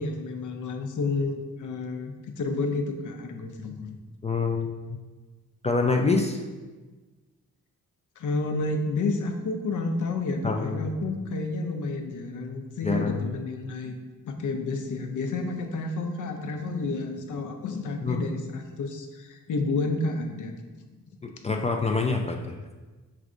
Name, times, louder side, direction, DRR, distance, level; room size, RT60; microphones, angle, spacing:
voice 1, 0.0-4.0 8.2-14.0 14.2-20.5, left 3 dB, 65° left, 4 dB, 0.6 m, -30 dB
voice 2, 4.2-4.7 5.6-6.4 10.4-10.8 12.8-13.3 18.0-18.2 21.2-22.5, left 4 dB, 20° left, 3 dB, 0.3 m, -26 dB
4.9 x 3.2 x 2.5 m, 1.3 s
cardioid pair, 60°, 33 cm